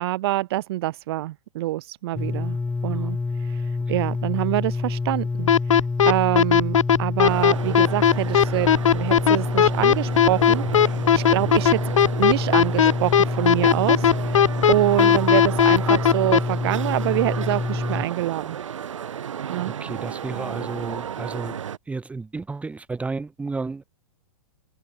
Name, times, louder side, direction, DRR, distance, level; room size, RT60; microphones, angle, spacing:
voice 1, 0.0-2.6 2.8-3.2 3.5-3.6 3.9-5.5 6.0-11.8 12.2-18.6 19.5-19.7, right 16 dB, 45° right, 1.2 m, -25 dB
sound 1, 2.1-18.1, left 3 dB, 10° left, 2.1 m, -27 dB
sound 2, 5.5-16.4, left 8 dB, 65° left, 1.2 m, -16 dB
sound 3, 7.2-21.8, right 8 dB, 65° right, 3.0 m, -33 dB
voice 2, 19.7-21.6 21.9-23.8, right 3 dB, 5° right, 1.1 m, -32 dB
figure-of-eight pair, 110°, 18 cm